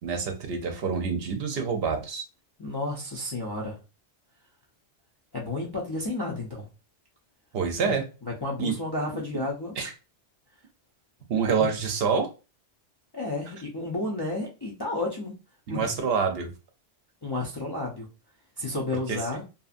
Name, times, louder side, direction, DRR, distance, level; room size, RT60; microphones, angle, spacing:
voice 1, 0.0-2.2 7.5-8.0 8.6-8.7 9.1-9.2 9.8-9.9 11.3-12.3 15.7-16.5 19.1-19.2, right 5 dB, 65° right, 5 dB, 0.7 m, -27 dB
voice 2, 2.6-3.8 5.3-6.7 7.8-7.9 8.3-9.8 11.6-11.7 13.1-15.4 15.7-16.0 17.2-18.1 18.6-19.4, left 2 dB, 35° left, -3 dB, 0.4 m, -32 dB
2.7 x 2.5 x 2.4 m, 0.31 s
omnidirectional pair, 1.1 m